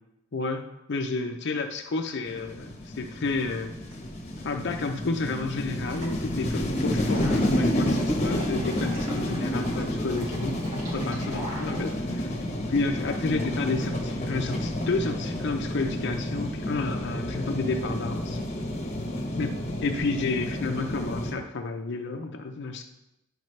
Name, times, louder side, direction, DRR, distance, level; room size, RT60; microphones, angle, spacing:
voice 1, 0.3-3.7 4.4-12.4 12.7-18.4 19.4-22.8, left 3 dB, 60° left, 5 dB, 0.6 m, -31 dB
sound 1, 2.3-21.3, left 1 dB, 35° left, 1.0 m, -30 dB
sound 2, 3.9-4.0 4.2-4.6 4.9-6.1 6.8-10.7 11.0-13.3 13.5-14.5, equal, 15° right, 2.2 m, -46 dB
sound 3, 5.9-18.5, equal, 80° right, 2.7 m, -47 dB
10.5 x 5.0 x 3.2 m, 0.90 s
head